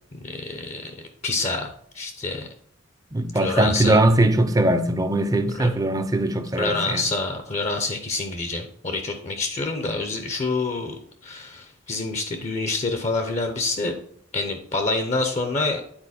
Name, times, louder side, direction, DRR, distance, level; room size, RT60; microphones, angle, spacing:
voice 1, 0.1-0.9 1.2-2.5 3.4-4.0 5.6-5.7 6.6-14.0 14.3-15.8, left 3 dB, 35° left, 0.7 m, -27 dB
voice 2, 3.1-7.1, right 1 dB, 20° right, 0.6 m, -21 dB
8.8 x 4.3 x 4.2 m
head